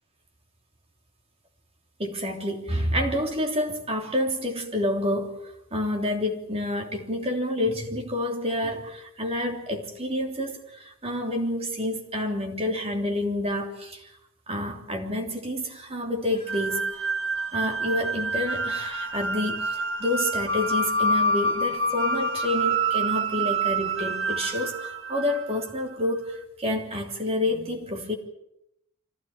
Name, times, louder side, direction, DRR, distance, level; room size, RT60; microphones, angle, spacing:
voice 1, 2.0-14.1 14.5-17.1 17.5-28.1, left 1 dB, 25° right, 2 dB, 3.3 m, -29 dB
sound 1, 16.5-25.6, right 2 dB, 65° right, 2.0 m, -27 dB
25.5 x 16.5 x 8.9 m, 0.79 s
head